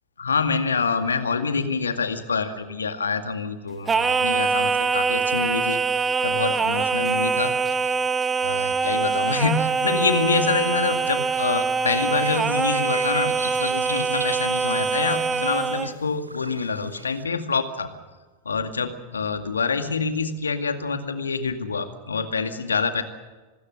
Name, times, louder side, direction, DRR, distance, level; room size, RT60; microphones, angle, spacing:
voice 1, 0.2-5.8 6.2-7.6 8.4-17.9 18.5-23.0, left 5 dB, 75° left, 8 dB, 2.1 m, -26 dB
Singing, 3.9-15.9, right 5 dB, 15° right, 1.3 m, -24 dB
sound 1, 11.9-17.2, right 1 dB, 85° right, 1.3 m, -38 dB
25.5 x 21.0 x 6.4 m, 1.3 s
figure-of-eight pair, 90°, 0 cm